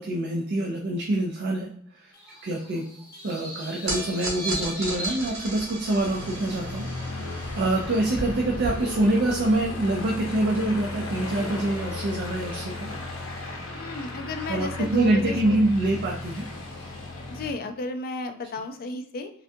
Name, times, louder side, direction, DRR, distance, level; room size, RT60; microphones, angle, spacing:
voice 1, 0.0-2.1 2.4-2.9 3.2-12.9 14.5-16.4, right 2 dB, 50° right, -1 dB, 0.4 m, -26 dB
sound 1, 2.1-6.1, right 1 dB, 15° left, 0.9 m, -38 dB
sound 2, 3.9-10.3, right 2 dB, 80° right, 1.2 m, -37 dB
Aircraft, 6.0-17.5, left 2 dB, 65° left, 0.8 m, -35 dB
voice 2, 13.7-15.6 17.3-19.3, left 2 dB, 45° left, 7 dB, 0.3 m, -33 dB
3.5 x 2.3 x 2.6 m, 0.64 s
head